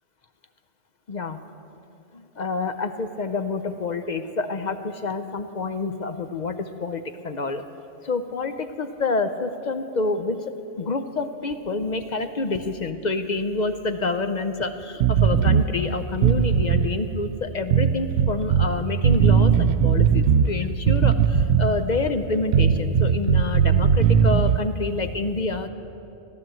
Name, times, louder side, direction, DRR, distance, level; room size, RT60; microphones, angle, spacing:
voice 1, 1.1-1.4 2.1-7.6 8.0-10.4 10.8-25.7, left 3 dB, 45° left, 9 dB, 0.6 m, -28 dB
sound 1, 15.0-15.7 16.1-16.9 17.7-18.7 19.0-20.5 20.9-21.8 22.5-24.6, right 8 dB, 65° right, 0.8 m, -18 dB
16.0 x 11.5 x 7.6 m, 2.7 s
omnidirectional pair, 1.3 m